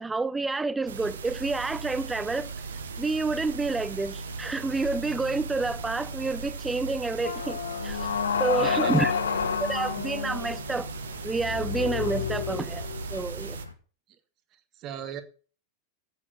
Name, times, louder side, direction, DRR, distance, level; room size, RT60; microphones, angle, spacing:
voice 1, 0.0-2.5 3.0-7.6 7.8-8.1 8.4-9.1 9.6-10.9 11.2-13.6, right 3 dB, 10° right, 0.8 m, -29 dB
sound 1, 0.9-13.7, right 5 dB, 65° right, 1.1 m, -39 dB
sound 2, 1.0-13.7, equal, 90° left, 1.5 m, -43 dB
sound 3, 7.2-13.2, left 7 dB, 65° left, 0.9 m, -30 dB
voice 2, 8.5-9.4 14.5-15.2, right 9 dB, 35° right, 1.6 m, -38 dB
9.7 x 8.3 x 7.7 m
figure-of-eight pair, 90°, 0 cm